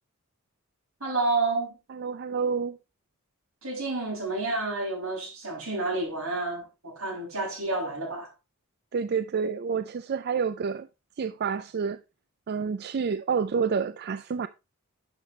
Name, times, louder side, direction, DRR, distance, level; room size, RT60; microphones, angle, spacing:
voice 1, 1.0-1.8 3.6-8.3, right 3 dB, 80° right, 5.9 m, -30 dB
voice 2, 1.9-2.8 8.9-10.9 11.2-12.0 12.5-14.5, right 6 dB, 50° right, 0.4 m, -28 dB
10.5 x 5.8 x 3.2 m
head